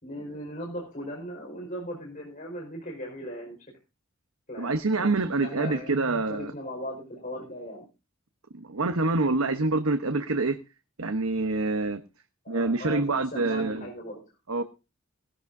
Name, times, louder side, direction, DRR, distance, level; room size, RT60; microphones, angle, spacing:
voice 1, 0.0-3.6 4.5-5.9 6.3-7.8 12.4-14.2, equal, 40° left, 5.0 m, -38 dB
voice 2, 4.6-6.5 8.5-10.6 11.0-12.0 12.5-13.9 14.5-14.6, right 3 dB, 85° right, 1.0 m, -26 dB
19.0 x 14.0 x 2.7 m
head